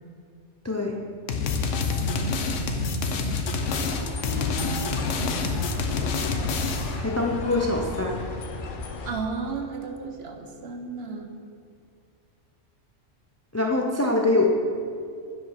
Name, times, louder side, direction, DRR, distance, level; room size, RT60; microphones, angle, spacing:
voice 1, 0.6-1.0 7.0-8.1 13.5-14.5, left 2 dB, 20° left, 1 dB, 0.4 m, -24 dB
sound 1, 1.3-7.0, left 4 dB, 75° left, 1.1 m, -27 dB
voice 2, 1.9-3.8 4.6-5.4 7.3-7.7 9.0-11.3, right 4 dB, 55° right, 4 dB, 1.0 m, -35 dB
sound 2, 3.6-9.1, left 3 dB, 50° left, 0.8 m, -34 dB
8.5 x 5.4 x 5.7 m, 2.4 s
omnidirectional pair, 1.3 m